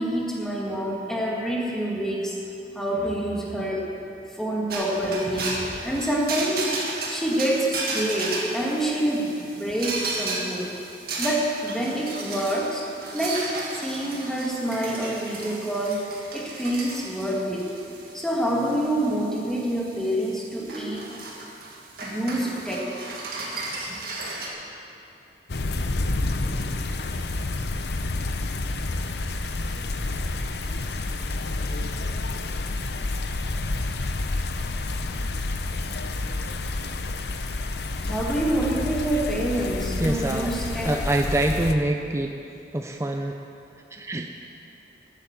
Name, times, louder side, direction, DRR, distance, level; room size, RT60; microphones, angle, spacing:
voice 1, 0.0-2.4 2.8-3.9 4.3-6.7 7.1-10.7 11.2-12.8 13.1-17.7 18.1-21.1 22.0-22.9 38.0-41.0, right 1 dB, 5° left, -4 dB, 1.9 m, -27 dB
sound 1, 4.7-24.5, right 3 dB, 55° right, 2.0 m, -34 dB
sound 2, 25.5-41.7, left 2 dB, 65° left, 0.7 m, -29 dB
voice 2, 40.0-40.5 40.8-42.4 42.7-43.4 43.9-44.3, right 1 dB, 15° right, 3 dB, 0.4 m, -25 dB
12.0 x 9.1 x 7.2 m, 2.8 s
head